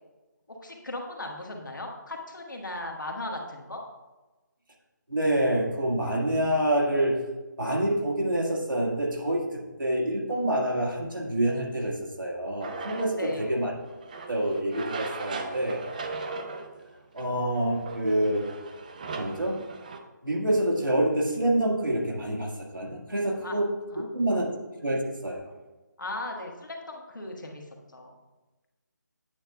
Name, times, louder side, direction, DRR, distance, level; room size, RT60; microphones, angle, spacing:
voice 1, 0.5-3.8 13.2-13.5 23.4-23.5 23.9-24.1 26.0-28.1, left 2 dB, 80° left, 1 dB, 1.3 m, -37 dB
voice 2, 5.1-7.2 7.6-13.7 14.3-15.8 17.1-18.5 19.2-19.6 20.2-23.7 24.0-24.5 24.8-25.5, right 1 dB, 85° right, -1 dB, 1.8 m, -27 dB
sound 1, 12.6-20.0, right 3 dB, 25° right, 0.4 m, -39 dB
8.7 x 6.4 x 2.3 m, 1.2 s
figure-of-eight pair, 155°, 10 cm